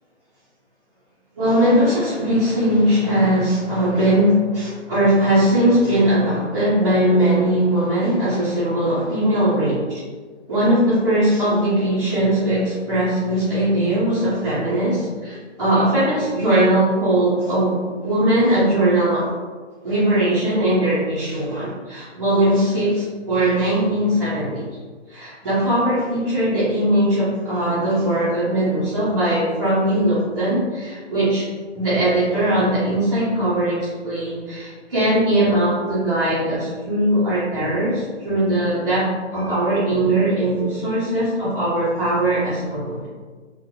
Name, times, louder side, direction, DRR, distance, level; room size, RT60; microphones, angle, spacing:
voice 1, 1.4-10.0 10.5-19.3 19.8-24.8 25.1-43.1, right 1 dB, 25° right, -13 dB, 0.5 m, -20 dB
2.5 x 2.1 x 2.7 m, 1.4 s
hypercardioid pair, 155°, 36 cm